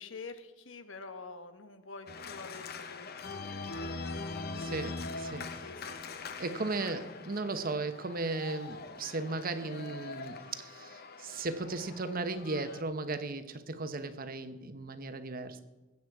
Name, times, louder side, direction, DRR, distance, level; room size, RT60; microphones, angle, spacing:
voice 1, 0.0-4.2 5.5-6.3 6.7-7.0, left 4 dB, 75° left, 9 dB, 1.2 m, -48 dB
Organ, 2.1-12.8, left 3 dB, 55° left, 0.9 m, -42 dB
voice 2, 4.6-5.5 6.4-15.6, right 3 dB, 50° right, 10 dB, 1.0 m, -36 dB
21.0 x 8.5 x 4.8 m, 1.1 s
head